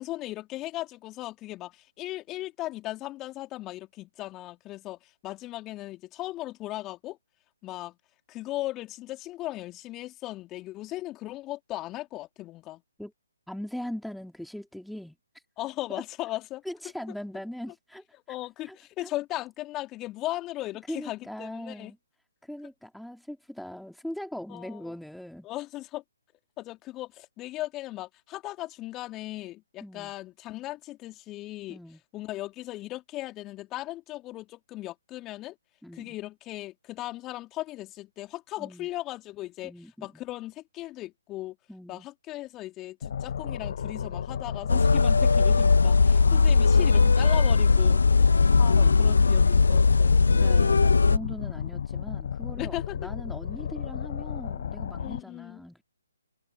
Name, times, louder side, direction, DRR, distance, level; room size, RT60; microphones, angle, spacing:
voice 1, 0.0-7.2 7.6-8.0 8.3-12.8 15.6-16.6 18.3-21.9 24.5-24.9 25.4-26.0 26.6-31.8 32.1-35.5 35.9-39.7 40.0-41.5 41.9-48.3 48.6-50.3 52.6-53.1 55.0-55.6, left 16 dB, 20° left, 3.6 m, -37 dB
voice 2, 13.5-15.2 15.9-16.0 16.6-18.0 18.7-18.8 19.0-19.1 20.9-22.0 22.4-25.5 29.8-30.1 31.7-32.0 35.8-36.2 38.6-38.9 39.6-40.2 41.7-42.1 48.8-48.9 50.3-55.8, equal, ahead, 3.2 m, -40 dB
sound 1, 43.0-55.2, left 8 dB, 45° left, 1.2 m, -34 dB
sound 2, 44.7-51.2, left 4 dB, 65° left, 1.6 m, -19 dB
figure-of-eight pair, 135°, 0 cm